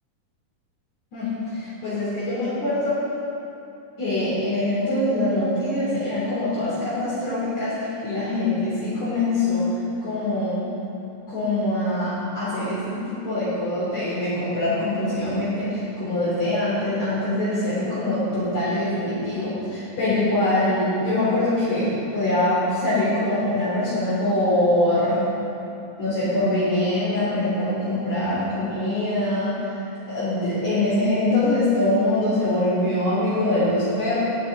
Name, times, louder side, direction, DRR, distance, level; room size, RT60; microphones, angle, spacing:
voice 1, 1.1-3.0 4.0-9.7 10.0-10.6 11.3-25.2 26.0-29.5 30.1-34.2, left 1 dB, 55° left, -13 dB, 5.0 m, -23 dB
19.0 x 7.5 x 5.1 m, 2.8 s
omnidirectional pair, 3.9 m